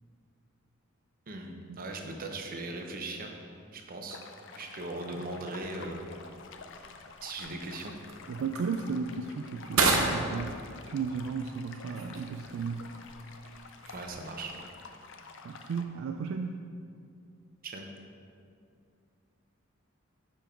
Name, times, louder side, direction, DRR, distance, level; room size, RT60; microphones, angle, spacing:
voice 1, 1.3-3.4 3.7-4.2 4.6-6.2 7.2-7.9 13.9-14.5 17.6-17.9, right 2 dB, 45° right, 3 dB, 0.7 m, -39 dB
sound 1, 4.1-15.8, left 5 dB, 60° left, 0.5 m, -50 dB
sound 2, 5.4-14.6, right 3 dB, 85° right, 0.8 m, -35 dB
voice 2, 8.3-10.5 10.9-12.8 15.4-16.6, right 5 dB, 65° right, 4 dB, 0.3 m, -34 dB
6.9 x 5.3 x 4.4 m, 2.4 s
head